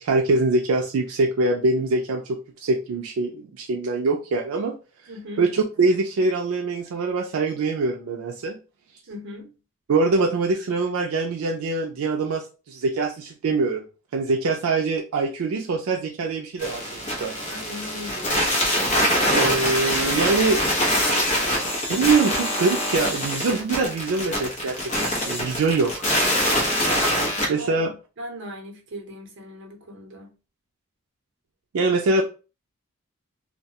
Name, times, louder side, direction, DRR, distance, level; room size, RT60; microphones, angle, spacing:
voice 1, 0.0-4.8 5.4-8.6 9.9-13.8 14.1-17.4 19.3-20.6 21.9-24.8 25.0-26.1 27.5-27.9 31.7-32.2, right 3 dB, 85° right, 0.4 m, -23 dB
voice 2, 5.1-5.4 9.1-9.5 17.5-18.3 27.6-30.3, left 1 dB, 60° right, 0.7 m, -38 dB
sound 1, 16.6-27.5, equal, 35° left, 0.8 m, -24 dB
2.3 x 2.2 x 2.7 m
head